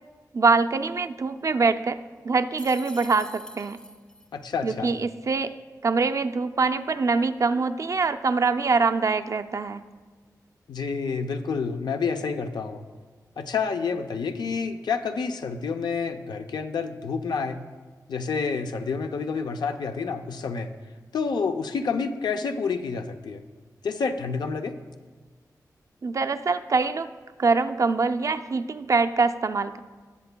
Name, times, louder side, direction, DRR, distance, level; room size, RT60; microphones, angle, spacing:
voice 1, 0.3-2.0 2.2-3.8 4.6-5.5 5.8-9.8 26.0-27.1 27.4-29.8, right 4 dB, 50° right, 9 dB, 0.4 m, -24 dB
sound 1, 2.6-4.3, equal, 10° left, 0.6 m, -43 dB
voice 2, 4.3-4.9 10.7-12.8 13.4-17.6 18.1-20.7 21.1-23.4 23.8-24.8, left 5 dB, 90° left, 7 dB, 0.5 m, -29 dB
18.5 x 6.9 x 2.2 m, 1.4 s
wide cardioid pair, 80°, 7 cm